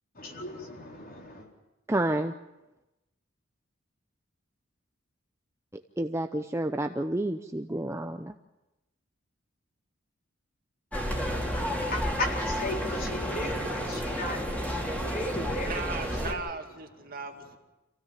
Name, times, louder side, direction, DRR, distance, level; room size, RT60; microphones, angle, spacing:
voice 1, 0.1-1.5 11.9-16.4, left 1 dB, 45° left, 0 dB, 4.1 m, -36 dB
voice 2, 1.9-2.3 6.0-8.3, right 1 dB, 15° right, 6 dB, 0.7 m, -29 dB
sound 1, 10.9-16.3, equal, 5° left, 3.1 m, -31 dB
voice 3, 15.6-17.6, right 4 dB, 45° right, 3 dB, 2.2 m, -38 dB
26.5 x 16.5 x 7.5 m, 1.0 s
head